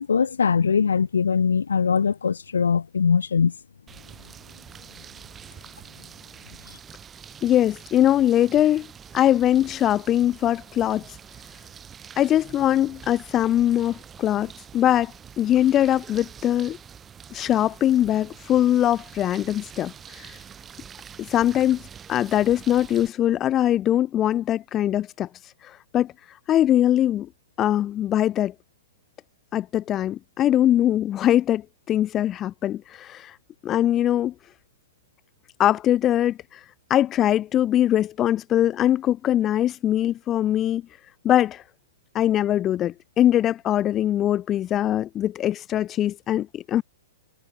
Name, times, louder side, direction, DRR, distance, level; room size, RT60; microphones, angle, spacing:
voice 1, 0.0-3.5, left 6 dB, 75° left, 2.1 m, -21 dB
sound 1, 3.9-23.1, right 7 dB, 20° right, 4.2 m, -45 dB
voice 2, 7.4-8.9 9.1-11.2 12.2-16.8 17.3-20.4 21.2-21.8 22.1-26.1 26.5-27.3 27.6-28.5 29.5-31.6 31.9-33.4 33.6-34.3 35.6-36.6 36.9-40.8 41.2-41.6 42.1-46.8, left 12 dB, 25° left, 0.4 m, -22 dB
figure-of-eight pair, 115°, 0 cm